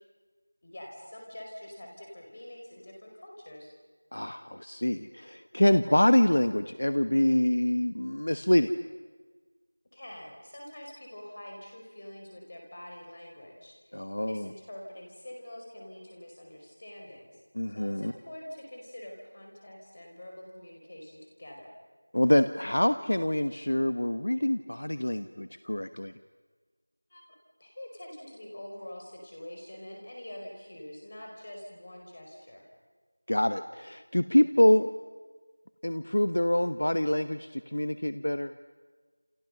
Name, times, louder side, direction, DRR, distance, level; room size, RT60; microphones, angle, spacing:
voice 1, 0.6-3.7 9.9-17.4 17.7-21.7 27.1-27.2 27.6-32.7, left 1 dB, 20° left, 0 dB, 5.0 m, -45 dB
voice 2, 4.1-8.7 13.9-14.5 17.5-18.1 22.1-26.1 33.3-34.9 35.8-38.5, left 1 dB, 55° left, 11 dB, 1.2 m, -25 dB
29.5 x 29.0 x 6.7 m, 1.4 s
figure-of-eight pair, 180°, 0 cm